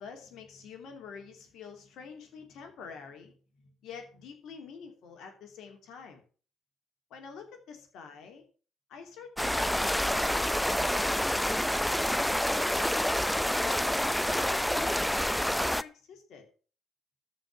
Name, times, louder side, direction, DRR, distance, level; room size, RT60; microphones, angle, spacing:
voice 1, 0.0-6.2 7.1-8.4 8.9-13.2 13.6-15.1 15.5-16.5, left 6 dB, 60° left, 4 dB, 2.9 m, -47 dB
sound 1, 9.4-15.8, equal, 5° left, 0.6 m, -28 dB
13.5 x 5.3 x 7.2 m, 0.40 s
hypercardioid pair, 50°, 0 cm